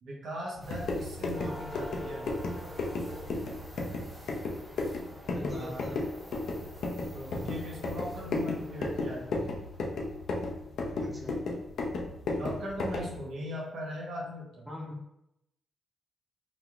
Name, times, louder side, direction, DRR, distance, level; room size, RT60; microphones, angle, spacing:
voice 1, 0.0-2.3 5.5-5.9 7.1-9.4 12.3-14.7, equal, 75° right, -3 dB, 0.9 m, -39 dB
sound 1, 0.6-13.2, left 2 dB, 75° left, 0.5 m, -34 dB
sound 2, 0.6-11.2 13.3-13.4 13.9-14.0, equal, 35° right, 1.0 m, -47 dB
voice 2, 5.3-6.1 11.0-11.4 14.7-15.0, left 2 dB, 10° right, -2 dB, 1.1 m, -41 dB
4.1 x 2.8 x 2.3 m, 0.83 s
supercardioid pair, 60°, 0 cm